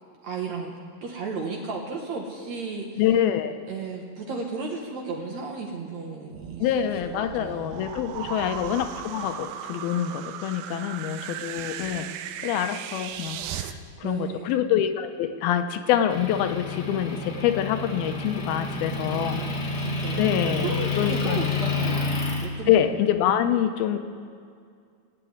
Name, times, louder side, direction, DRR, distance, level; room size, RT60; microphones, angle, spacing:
voice 1, 0.2-0.7 1.0-3.0 3.7-7.7 8.2-8.7 10.7-10.9 14.0-14.5 19.1-22.1 22.4-22.8, right 4 dB, 60° right, 0 dB, 2.1 m, -34 dB
voice 2, 3.0-3.6 6.6-12.1 12.4-19.4 20.2-21.5 22.7-24.0, left 10 dB, 80° left, 8 dB, 2.5 m, -26 dB
sound 1, 6.3-13.7, right 10 dB, 85° right, 2.5 m, -37 dB
Motor vehicle (road) / Engine, 16.1-22.5, left 3 dB, 55° left, 1.1 m, -29 dB
16.5 x 8.9 x 9.5 m, 2.2 s
omnidirectional pair, 4.5 m